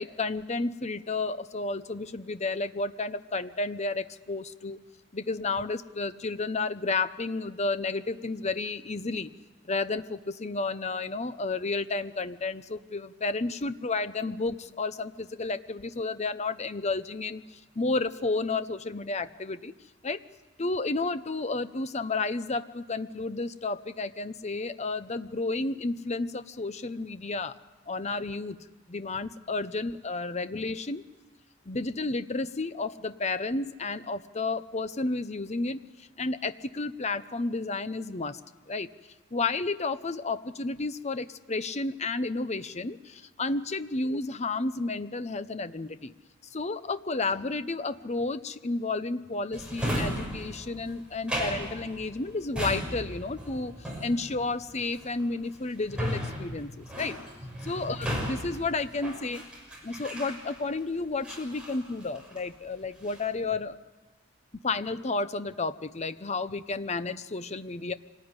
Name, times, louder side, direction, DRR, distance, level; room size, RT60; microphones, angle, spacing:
voice 1, 0.0-4.8 5.1-9.3 9.7-19.7 20.0-20.2 20.6-27.6 27.9-31.0 31.7-38.4 38.7-38.9 39.3-46.1 46.5-57.2 57.6-59.4 59.8-63.8 64.6-67.9, left 3 dB, 35° left, 12 dB, 0.8 m, -32 dB
Drawer open or close, 49.5-60.8 61.2-62.5 62.8-63.4, equal, 5° right, 6.5 m, -35 dB
26.0 x 19.5 x 9.8 m, 1.2 s
head